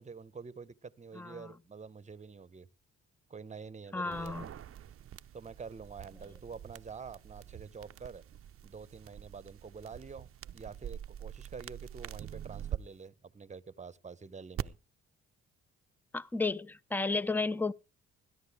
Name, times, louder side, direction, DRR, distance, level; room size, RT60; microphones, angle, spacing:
voice 1, 0.0-2.7 3.3-4.5 5.3-8.2 8.6-10.3 10.5-14.8, right 5 dB, 25° right, 0.9 m, -47 dB
voice 2, 1.1-1.5 3.9-4.5 16.1-17.7, left 3 dB, 5° left, 0.6 m, -33 dB
sound 1, 4.1-12.8 14.6-14.7, right 10 dB, 45° right, 0.6 m, -44 dB
20.5 x 10.5 x 3.6 m
cardioid pair, 90°, 30 cm